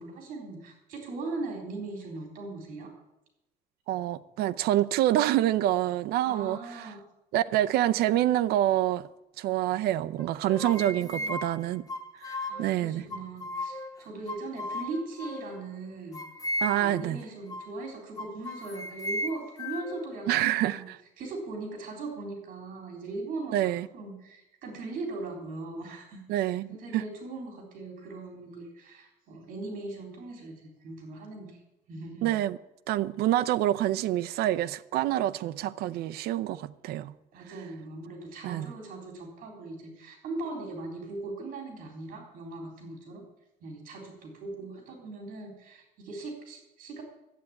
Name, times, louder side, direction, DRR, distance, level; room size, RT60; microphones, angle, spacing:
voice 1, 0.0-2.9 6.3-7.0 10.5-11.4 12.4-16.2 16.8-20.8 21.2-31.6 31.9-32.3 37.3-43.2 43.6-47.0, right 3 dB, 60° right, 3.7 m, -39 dB
voice 2, 3.9-6.6 7.3-9.1 9.4-11.8 12.2-13.1 16.6-17.2 20.3-21.0 23.5-23.9 26.3-27.0 32.2-32.6 32.9-37.1 38.4-38.7, right 13 dB, 85° right, 0.6 m, -27 dB
sound 1, 10.2-12.7 13.1-14.0 14.3-15.6 16.1-17.0 17.5-17.7 18.2-20.1, left 1 dB, 20° left, 0.9 m, -35 dB
12.0 x 8.2 x 8.7 m
cardioid pair, 170°, 16 cm